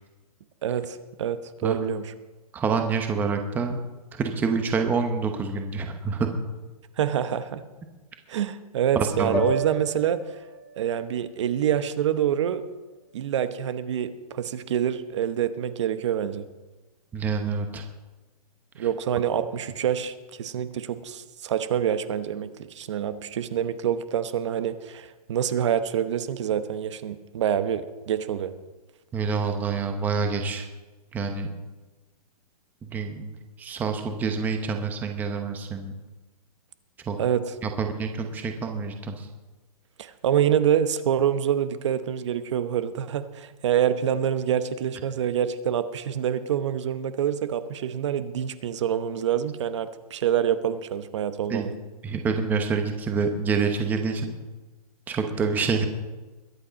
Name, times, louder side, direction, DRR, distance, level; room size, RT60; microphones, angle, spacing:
voice 1, 0.6-2.0 7.0-7.6 8.3-10.4 10.8-12.6 13.1-16.4 18.8-28.5 37.2-37.5 40.0-51.8, right 9 dB, 50° right, 12 dB, 0.9 m, -26 dB
voice 2, 2.5-3.8 4.1-6.3 9.0-9.5 17.1-17.8 18.8-18.9 29.1-30.7 31.1-31.5 32.9-35.9 37.1-37.2 37.6-39.3 51.5-51.7 52.0-54.4 55.1-55.9, right 5 dB, 10° right, 5 dB, 0.9 m, -27 dB
sound 1, 9.3-13.6, left 1 dB, 5° left, 2.1 m, -36 dB
22.0 x 8.8 x 5.2 m, 1.2 s
hypercardioid pair, 165°, 20 cm